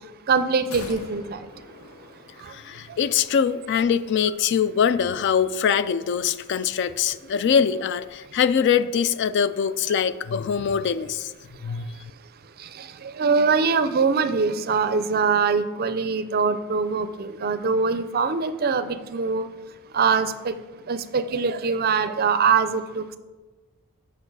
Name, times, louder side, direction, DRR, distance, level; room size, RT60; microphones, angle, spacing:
voice 1, 0.3-1.4 2.4-2.5 12.8-19.5 19.9-20.5 20.9-23.2, right 5 dB, 45° right, 12 dB, 0.4 m, -23 dB
sound 1, 0.7-3.1 3.4-3.5, left 3 dB, 80° left, 0.9 m, -44 dB
voice 2, 2.5-11.3 11.6-11.9, left 7 dB, 50° left, 14 dB, 0.3 m, -23 dB
7.8 x 6.0 x 4.6 m, 1.3 s
head